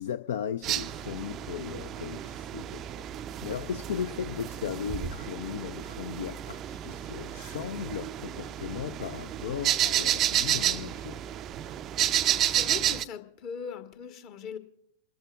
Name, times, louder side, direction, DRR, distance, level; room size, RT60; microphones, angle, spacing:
voice 1, 0.0-3.1 3.4-11.2, left 8 dB, 60° left, 11 dB, 0.5 m, -36 dB
sound 1, 0.6-13.0, right 11 dB, 30° right, 0.4 m, -31 dB
voice 2, 12.5-14.6, left 7 dB, 40° left, 8 dB, 1.3 m, -40 dB
28.5 x 13.5 x 2.4 m, 0.73 s
figure-of-eight pair, 90°, 0 cm